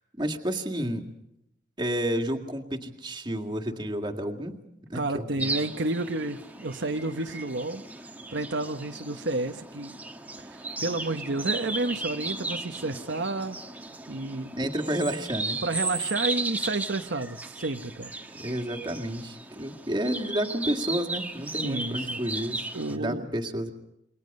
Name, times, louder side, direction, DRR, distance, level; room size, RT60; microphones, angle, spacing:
voice 1, 0.2-1.1 1.8-4.6 4.9-5.5 14.5-15.6 18.4-23.7, equal, 25° right, 4 dB, 2.1 m, -30 dB
voice 2, 4.9-7.8 8.3-9.9 10.4-13.6 14.1-14.5 15.6-18.1 21.6-22.2 22.7-23.2, right 2 dB, 70° right, 5 dB, 1.1 m, -31 dB
sound 1, 5.4-23.0, right 3 dB, 10° right, 1.3 m, -36 dB
28.0 x 23.0 x 5.4 m, 0.83 s
head